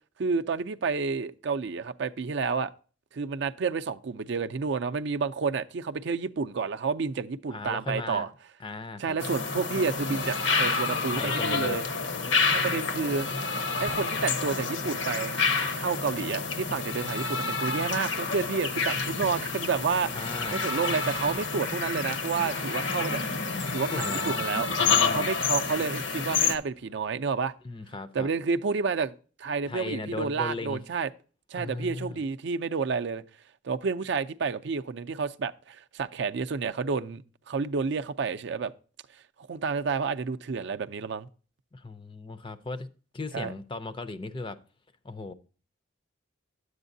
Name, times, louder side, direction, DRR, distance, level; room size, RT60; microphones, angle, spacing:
voice 1, 0.2-2.7 3.1-8.3 9.0-11.8 12.5-13.3 13.8-15.4 15.7-20.1 20.5-23.2 23.7-24.7 25.1-27.5 28.1-31.1 31.5-33.2 33.6-38.7 39.5-41.3 43.3-43.5, right 5 dB, 60° right, 0.4 m, -30 dB
voice 2, 7.5-8.3 8.6-9.2 11.2-11.8 20.1-20.7 23.7-24.4 24.8-25.3 27.6-28.3 29.7-30.8 31.6-32.2 41.7-42.9 43.1-44.6 45.0-45.3, left 3 dB, 25° left, 0.4 m, -36 dB
sound 1, 9.2-26.6, left 4 dB, 65° left, 0.8 m, -29 dB
sound 2, 22.3-27.6, left 3 dB, 80° left, 1.4 m, -47 dB
10.0 x 8.0 x 2.6 m
head